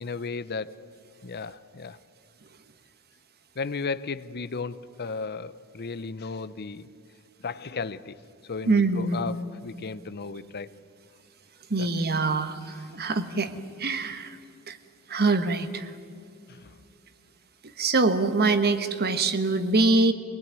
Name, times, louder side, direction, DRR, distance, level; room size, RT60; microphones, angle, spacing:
voice 1, 0.0-0.7 1.2-2.0 3.6-6.9 7.4-8.2 8.5-10.7 11.8-11.9 16.5-16.7, left 4 dB, 45° left, 15 dB, 0.7 m, -34 dB
voice 2, 8.7-9.4 11.7-13.5 13.8-14.4 14.7-14.8 15.1-15.9 17.8-20.1, right 3 dB, 45° right, 10 dB, 1.4 m, -24 dB
25.0 x 20.0 x 9.7 m, 2.5 s
head